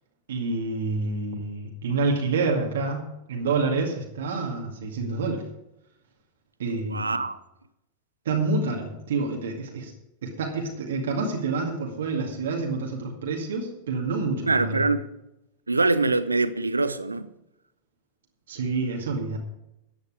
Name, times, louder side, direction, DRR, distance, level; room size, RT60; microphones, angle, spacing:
voice 1, 0.3-5.5 6.6-7.2 8.3-9.9 10.2-14.8 18.5-19.4, right 3 dB, 60° right, 2.2 m, -28 dB
voice 2, 6.8-7.4 14.5-15.1 15.7-17.3, right 3 dB, 80° right, 0.7 m, -24 dB
14.0 x 9.5 x 4.9 m
figure-of-eight pair, 90°, 0 cm